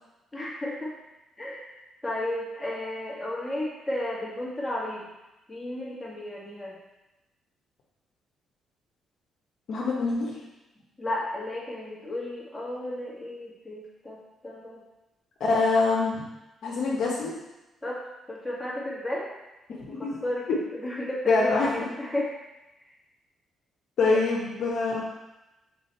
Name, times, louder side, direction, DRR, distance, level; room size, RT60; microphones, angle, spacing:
voice 1, 0.3-0.9 1.4-1.7 2.0-5.0 5.5-6.8 11.0-14.2 14.4-14.8 17.8-18.0 18.3-19.3 19.7-19.9 20.2-20.5 20.7-22.3 22.8-22.9 24.1-24.2 24.5-24.8, left 1 dB, 15° left, -5 dB, 2.1 m, -33 dB
voice 2, 9.7-10.4 15.4-16.2 16.6-17.3 19.9-20.1 21.3-21.9 24.0-25.0, left 3 dB, 65° left, -5 dB, 1.1 m, -25 dB
6.1 x 4.1 x 4.3 m, 0.98 s
cardioid pair, 90°, 0 cm